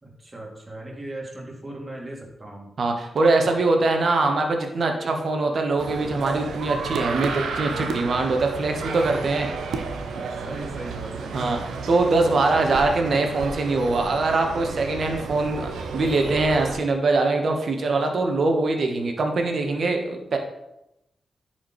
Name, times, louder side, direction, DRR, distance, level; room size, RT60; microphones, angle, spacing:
voice 1, 0.0-2.7 9.4-11.4, right 1 dB, 30° right, -2 dB, 2.5 m, -38 dB
voice 2, 2.8-9.5 11.3-11.6 11.9-20.4, right 3 dB, 65° right, 4 dB, 1.2 m, -23 dB
sound 1, 5.8-16.8, right 5 dB, 80° right, 0.6 m, -32 dB
10.5 x 4.5 x 3.2 m, 0.88 s
supercardioid pair, 40°, 0 cm